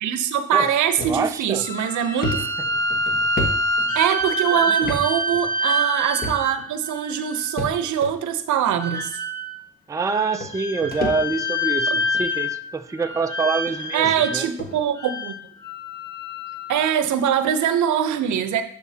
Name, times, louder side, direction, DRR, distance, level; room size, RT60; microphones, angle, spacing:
voice 1, 0.0-2.4 3.9-9.1 13.9-15.3 16.7-18.6, right 9 dB, 75° right, 10 dB, 0.7 m, -22 dB
sound 1, 1.0-1.2 1.6-1.7 2.2-4.3 4.8-5.0 5.3-5.4 6.2-6.7 7.6-8.1 9.0-9.1 10.1-10.2 10.4-11.6 12.0-12.3 13.1-13.2 13.7-13.8 14.0-14.2 14.6-14.8, left 2 dB, 30° left, 1.3 m, -30 dB
voice 2, 1.0-1.7 4.6-4.7 9.9-14.5, right 4 dB, 10° right, 7 dB, 0.4 m, -26 dB
sound 2, 1.5-7.7 8.8-9.6 10.1-12.7 13.0-14.5 15.0-17.0, equal, 15° left, 1.5 m, -26 dB
11.5 x 4.8 x 2.8 m, 0.67 s
cardioid pair, 90°, 30 cm